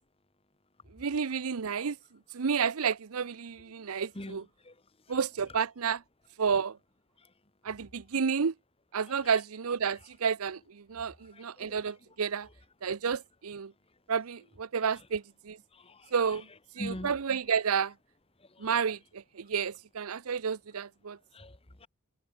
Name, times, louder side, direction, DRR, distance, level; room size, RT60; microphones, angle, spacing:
voice 1, 0.9-2.0 2.3-4.5 5.1-6.0 6.4-6.8 7.6-8.5 8.9-12.5 12.8-13.7 14.1-15.6 16.1-16.5 16.7-17.9 18.6-21.2, right 6 dB, 80° right, 0.6 m, -31 dB
voice 2, 11.3-11.7 15.7-16.1 16.8-17.1 18.6-18.7 21.3-21.9, left 1 dB, 25° left, 1.7 m, -42 dB
open air
head